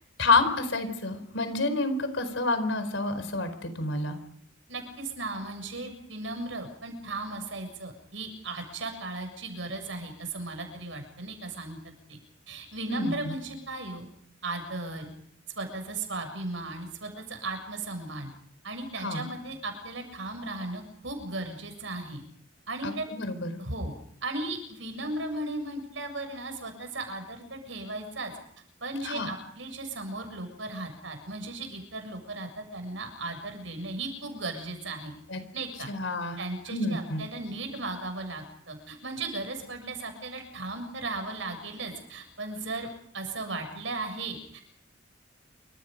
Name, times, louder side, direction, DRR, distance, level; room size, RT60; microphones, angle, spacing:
voice 1, 0.2-4.2 12.9-13.3 19.0-19.3 22.8-23.6 29.0-29.3 35.3-35.4 35.9-36.4 36.7-37.2, left 3 dB, 80° left, 10 dB, 4.5 m, -28 dB
voice 2, 4.7-11.8 12.1-12.2 12.5-14.1 14.4-15.1 15.6-18.3 18.6-22.2 22.7-23.1 23.6-23.9 24.2-28.3 28.8-35.1 35.5-35.9 36.4-42.9 43.1-44.6, right 2 dB, 75° right, 6 dB, 7.0 m, -36 dB
28.5 x 25.5 x 5.3 m, 0.65 s
head